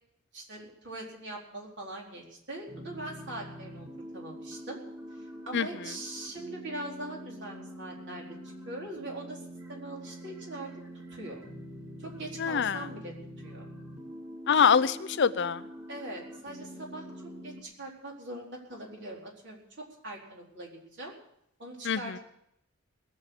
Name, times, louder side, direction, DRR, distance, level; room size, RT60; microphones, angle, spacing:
voice 1, 0.3-3.9 4.1-4.8 5.2-8.3 8.7-9.4 9.7-10.7 11.1-11.4 12.0-13.7 15.9-19.6 20.0-21.1 21.6-22.2, right 1 dB, 55° right, -1 dB, 4.3 m, -42 dB
sound 1, 2.7-17.6, equal, 15° right, 3.9 m, -45 dB
voice 2, 12.4-12.8 14.5-15.6 21.8-22.1, left 6 dB, 55° left, 14 dB, 0.6 m, -24 dB
19.5 x 7.4 x 8.4 m, 0.76 s
head